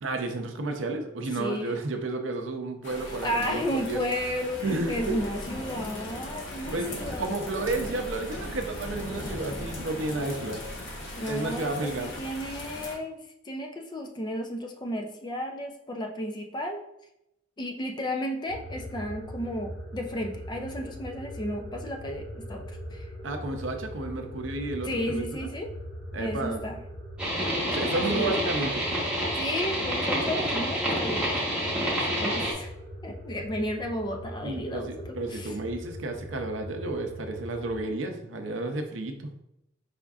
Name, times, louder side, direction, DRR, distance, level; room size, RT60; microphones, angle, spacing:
voice 1, 0.0-4.0 4.6-5.1 6.7-6.9 7.2-10.6 11.3-12.1 23.2-25.2 26.1-26.6 27.7-28.8 34.4-39.3, right 2 dB, 75° right, 5 dB, 0.5 m, -32 dB
voice 2, 1.3-1.7 3.1-7.3 11.2-16.8 17.6-23.1 24.8-25.7 26.2-26.8 27.9-28.3 29.4-31.2 32.0-32.7 33.0-35.6, equal, 20° left, 3 dB, 0.4 m, -33 dB
sound 1, 2.8-13.0, left 1 dB, 70° left, 0.9 m, -38 dB
sound 2, 18.5-37.8, equal, 45° left, 1.4 m, -41 dB
sound 3, 27.2-32.5, equal, 5° right, 1.1 m, -28 dB
5.0 x 3.5 x 2.3 m, 0.83 s
head